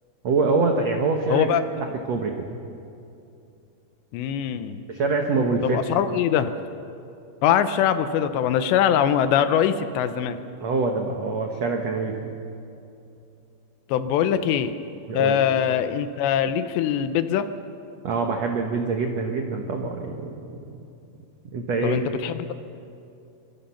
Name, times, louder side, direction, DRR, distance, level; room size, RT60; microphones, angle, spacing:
voice 1, 0.2-1.5 2.1-2.3 4.9-5.8 10.6-12.2 15.1-15.3 18.0-20.3 21.5-22.0, right 4 dB, 75° right, 2 dB, 1.5 m, -24 dB
voice 2, 1.3-1.9 4.1-4.8 5.6-6.6 7.4-10.4 13.9-14.7 15.1-17.5 21.8-22.5, left 9 dB, 80° left, 10 dB, 3.0 m, -22 dB
25.0 x 23.5 x 5.8 m, 2.7 s
omnidirectional pair, 5.1 m